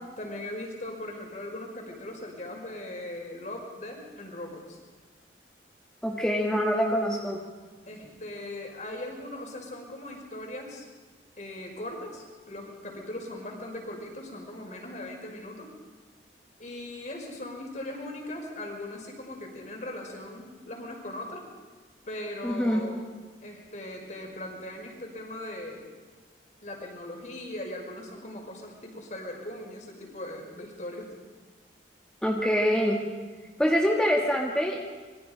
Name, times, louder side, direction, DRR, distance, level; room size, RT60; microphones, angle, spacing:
voice 1, 0.2-4.8 7.8-10.9 11.4-15.7 16.6-21.5 22.1-23.0 23.4-25.8 26.6-31.1, left 1 dB, 45° left, 1 dB, 5.2 m, -39 dB
voice 2, 6.0-7.4 22.4-22.8 32.2-33.0 33.6-34.8, equal, 5° left, -1 dB, 1.8 m, -25 dB
26.0 x 23.0 x 5.1 m, 1.4 s
head